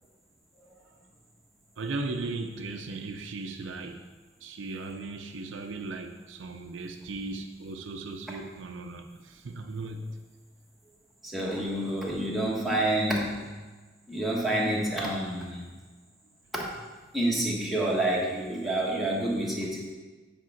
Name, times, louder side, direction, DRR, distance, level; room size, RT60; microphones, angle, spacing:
voice 1, 1.8-4.0 4.4-10.1, right 3 dB, 75° right, 6 dB, 0.5 m, -37 dB
voice 2, 11.2-13.4 14.1-15.6 16.5-16.6 17.1-19.9, right 1 dB, ahead, -5 dB, 1.2 m, -28 dB
7.5 x 3.5 x 5.8 m, 1.3 s
head